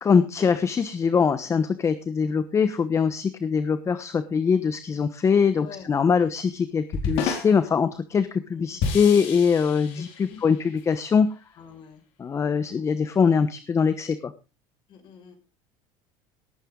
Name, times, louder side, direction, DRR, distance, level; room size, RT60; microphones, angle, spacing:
voice 1, 0.0-11.3 12.2-14.3, left 6 dB, 25° left, 12 dB, 1.0 m, -22 dB
voice 2, 5.6-6.3 8.5-8.8 9.9-10.4 11.6-12.0 14.9-15.4, left 7 dB, 45° left, 5 dB, 5.8 m, -46 dB
sound 1, 6.9-7.7 8.8-10.8, left 5 dB, 65° left, 5.6 m, -30 dB
18.5 x 9.1 x 3.8 m, 0.30 s
supercardioid pair, 115°, 11 cm